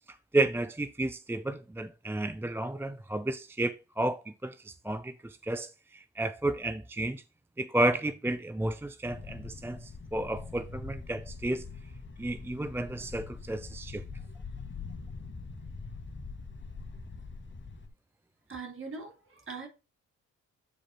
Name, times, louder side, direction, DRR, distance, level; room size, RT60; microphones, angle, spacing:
voice 1, 0.1-7.2 7.6-11.7 12.2-14.0, right 2 dB, 5° right, 0.5 m, -32 dB
sound 1, 9.0-17.9, left 4 dB, 35° left, 1.9 m, -43 dB
voice 2, 18.5-19.7, right 4 dB, 40° right, 3.8 m, -41 dB
8.8 x 4.8 x 4.3 m
supercardioid pair, 60°, 33 cm